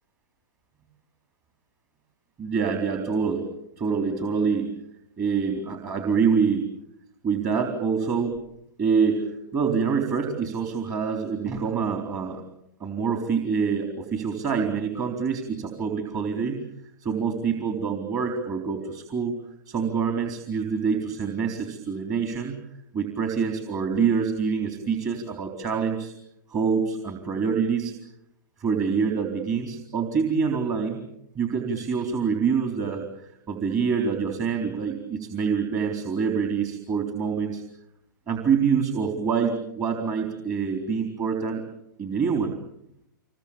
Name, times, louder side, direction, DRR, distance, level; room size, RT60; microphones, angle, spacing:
voice 1, 2.4-3.5 3.8-4.7 5.2-6.6 7.2-8.4 8.8-12.4 12.8-16.6 17.0-19.4 19.7-22.6 22.9-26.1 26.5-27.9 28.6-31.0 31.3-37.6 38.3-41.6 42.0-42.5, right 6 dB, 30° right, 5 dB, 4.0 m, -26 dB
27.0 x 23.0 x 8.9 m, 0.80 s
hypercardioid pair, 130°, 11 cm